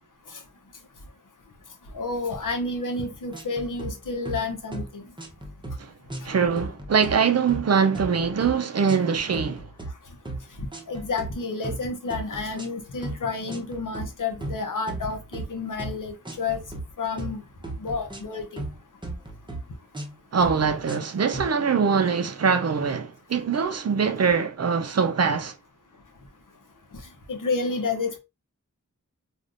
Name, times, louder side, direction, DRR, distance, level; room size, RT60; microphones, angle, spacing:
voice 1, 1.9-5.0 6.2-6.3 10.9-16.6 17.0-17.4 17.8-18.6 27.3-28.2, left 3 dB, 70° left, 0.8 m, -30 dB
sound 1, 3.3-4.0 4.3-4.5 4.7-4.9 5.2-5.8 6.1-6.3 6.6-7.2 7.5-7.7 7.9-8.6 8.9-9.1 9.3-9.9 10.3-10.4 10.7-11.3 11.6-11.8 12.1-12.7 13.0-13.2 13.5-14.1 14.4-15.5 15.8-16.0 16.3-16.8 17.2-17.4 17.6-18.8 19.0-19.6 19.9-20.1 20.4-21.1 21.3-21.5, right 2 dB, 15° right, 0.7 m, -35 dB
voice 2, 6.2-9.7 20.3-25.5, right 6 dB, 50° right, 0.5 m, -23 dB
3.3 x 2.4 x 2.5 m
wide cardioid pair, 75°, 33 cm